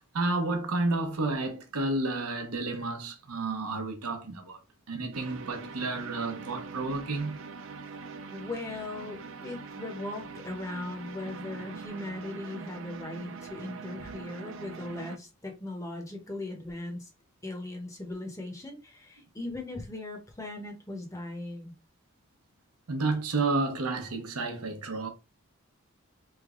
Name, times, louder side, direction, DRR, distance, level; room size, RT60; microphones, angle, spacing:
voice 1, 0.1-4.6 4.9-7.4 22.9-25.1, right 3 dB, 90° right, 0.8 m, -31 dB
sound 1, 5.1-15.2, right 4 dB, 60° right, 0.4 m, -43 dB
voice 2, 8.3-17.1 17.4-21.7, left 2 dB, 15° left, 0.7 m, -39 dB
3.2 x 2.2 x 3.6 m
head